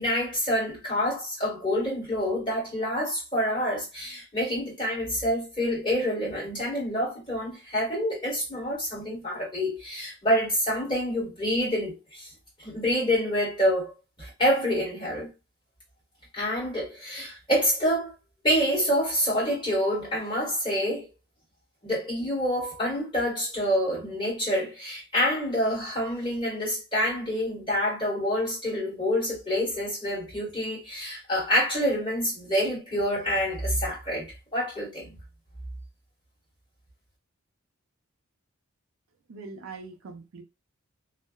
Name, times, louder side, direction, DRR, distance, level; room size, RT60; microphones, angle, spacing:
voice 1, 0.0-12.3 12.6-13.9 14.2-15.3 16.3-18.1 18.4-21.1 21.8-35.1, equal, 25° left, 1.6 m, -27 dB
voice 2, 39.3-40.4, right 4 dB, 70° right, 0.4 m, -42 dB
2.6 x 2.0 x 2.3 m
head